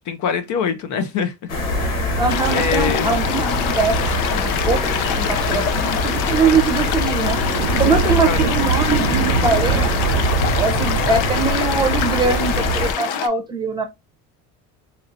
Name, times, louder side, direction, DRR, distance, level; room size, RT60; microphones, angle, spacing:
voice 1, 0.1-1.5 1.8-2.2 2.5-3.1 5.5-5.7 7.9-8.5, left 6 dB, 55° left, 0.6 m, -25 dB
sound 1, 1.5-12.9, left 2 dB, 70° left, 1.6 m, -23 dB
voice 2, 2.2-4.0 4.3-7.4 7.8-9.9 10.6-13.8, right 4 dB, 10° right, 0.7 m, -22 dB
sound 2, 2.3-13.3, left 8 dB, 90° left, 0.7 m, -25 dB
sound 3, 7.0-11.9, right 9 dB, 90° right, 0.5 m, -24 dB
4.2 x 2.6 x 2.6 m
cardioid pair, 145°, 37 cm